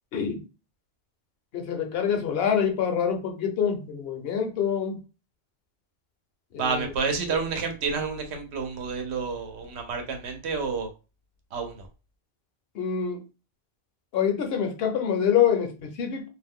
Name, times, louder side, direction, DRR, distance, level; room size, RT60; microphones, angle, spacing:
voice 1, 0.1-0.4 1.5-5.0 6.5-6.9 7.3-7.4 12.7-13.2 14.1-16.3, left 8 dB, 70° left, 0.9 m, -26 dB
voice 2, 6.6-10.9 11.5-11.9, right 5 dB, 85° right, 0.9 m, -29 dB
2.5 x 2.1 x 3.5 m
omnidirectional pair, 1.1 m